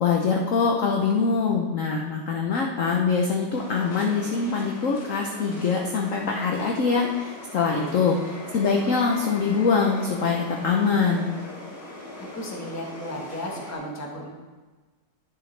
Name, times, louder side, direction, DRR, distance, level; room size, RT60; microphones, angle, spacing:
voice 1, 0.0-8.1 8.5-11.3, left 5 dB, 60° left, 0 dB, 0.9 m, -23 dB
sound 1, 3.5-13.7, left 1 dB, 35° left, 2.5 m, -40 dB
voice 2, 7.5-8.0 12.2-14.3, left 1 dB, 10° left, -1 dB, 1.0 m, -35 dB
11.0 x 6.9 x 3.3 m, 1.3 s
omnidirectional pair, 2.1 m